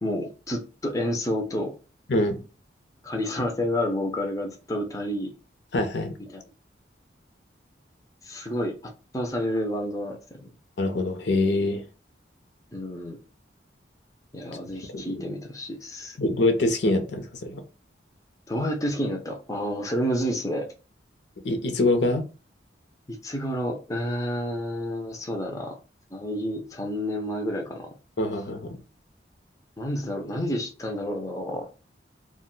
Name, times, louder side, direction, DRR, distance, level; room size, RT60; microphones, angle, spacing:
voice 1, 0.0-1.7 3.0-5.3 6.3-6.4 8.2-10.5 12.7-13.2 14.3-16.2 18.5-20.7 23.1-25.8 26.1-27.9 29.8-31.7, equal, 20° left, 2 dB, 0.4 m, -30 dB
voice 2, 5.7-6.1 10.8-11.8 14.9-15.2 16.2-17.6 21.4-22.2 28.2-28.8, left 2 dB, 70° left, 6 dB, 0.6 m, -24 dB
2.4 x 2.1 x 3.7 m, 0.34 s
head